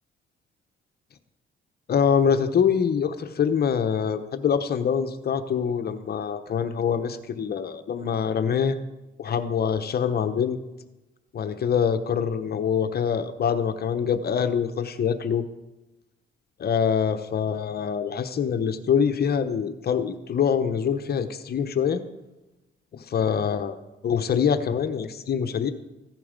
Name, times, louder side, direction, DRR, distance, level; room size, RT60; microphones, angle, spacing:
voice 1, 1.9-8.8 9.2-10.6 11.3-15.4 16.6-22.0 22.9-23.8 24.0-25.7, left 7 dB, 50° left, 9 dB, 1.0 m, -24 dB
15.5 x 11.0 x 5.2 m, 1.1 s
cardioid pair, 90°, 20 cm